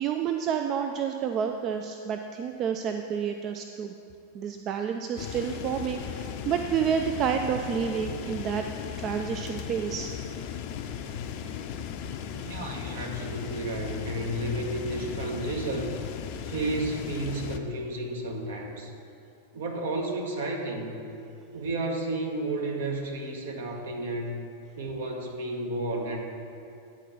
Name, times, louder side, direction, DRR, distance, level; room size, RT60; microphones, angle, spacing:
voice 1, 0.0-3.9 4.3-8.6 9.0-10.1, right 7 dB, 35° right, 5 dB, 0.3 m, -29 dB
sound 1, 5.2-17.6, left 8 dB, 45° left, 0.5 m, -37 dB
voice 2, 12.4-15.9 16.4-18.9 19.5-21.1 21.5-24.4 24.8-26.2, right 2 dB, 60° right, 1 dB, 1.1 m, -32 dB
9.8 x 4.4 x 5.8 m, 2.6 s
figure-of-eight pair, 90°, 0 cm